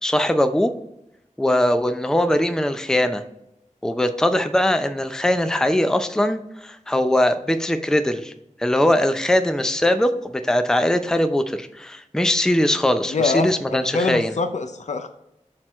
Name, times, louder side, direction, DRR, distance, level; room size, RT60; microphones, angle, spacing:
voice 1, 0.0-0.7 1.4-3.2 3.8-8.3 8.6-14.4, left 1 dB, 5° left, 9 dB, 0.5 m, -21 dB
voice 2, 13.1-15.1, left 3 dB, 60° left, 8 dB, 0.5 m, -24 dB
6.3 x 4.4 x 4.4 m, 0.83 s
wide cardioid pair, 55°, 13 cm